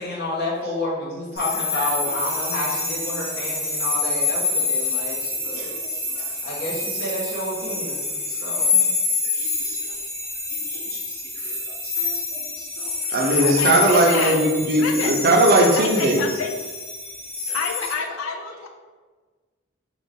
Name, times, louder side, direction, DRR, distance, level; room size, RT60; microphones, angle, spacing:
voice 1, 0.0-5.8 6.4-8.1 8.4-8.9, left 1 dB, 60° left, -6 dB, 1.2 m, -30 dB
sound 1, 1.4-17.9, left 3 dB, 15° left, 1.2 m, -26 dB
voice 2, 5.4-6.3 7.9-8.7 9.2-9.9 10.5-11.6 11.8-16.2 17.4-17.6, right 1 dB, 50° right, 0 dB, 0.6 m, -22 dB
voice 3, 13.3-14.4 14.8-15.1 15.7-16.5 17.5-18.7, left 5 dB, 85° left, 4 dB, 0.4 m, -29 dB
4.0 x 2.4 x 3.5 m, 1.4 s
head